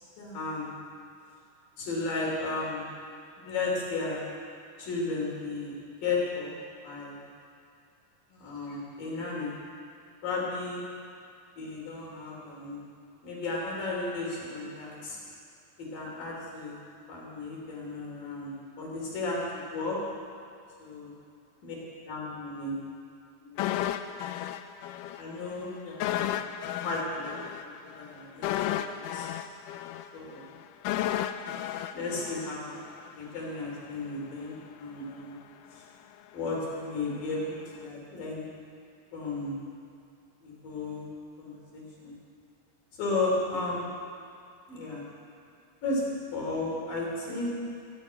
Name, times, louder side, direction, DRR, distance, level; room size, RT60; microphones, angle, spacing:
voice 1, 0.2-0.7 1.8-2.9 3.4-4.2 4.8-5.7 6.0-6.6 6.8-7.2 8.3-9.5 10.2-10.8 11.6-12.8 13.2-15.2 15.9-16.8 17.1-20.0 20.8-21.1 21.6-21.8 22.0-22.8 23.4-23.7 25.2-26.3 26.8-27.3 27.8-29.3 30.1-30.4 31.9-32.8 33.2-35.4 35.7-35.8 36.3-38.5 39.1-39.6 40.4-41.1 41.4-42.2 42.9-43.8 44.7-45.0 45.8-46.0 46.3-47.6, left 3 dB, 65° left, -4 dB, 4.7 m, -34 dB
sound 1, 23.6-25.2 25.5-25.6 26.0-33.1 33.4-33.5, left 11 dB, 85° left, 1.9 m, -33 dB
15.0 x 8.1 x 8.9 m, 2.5 s
omnidirectional pair, 4.2 m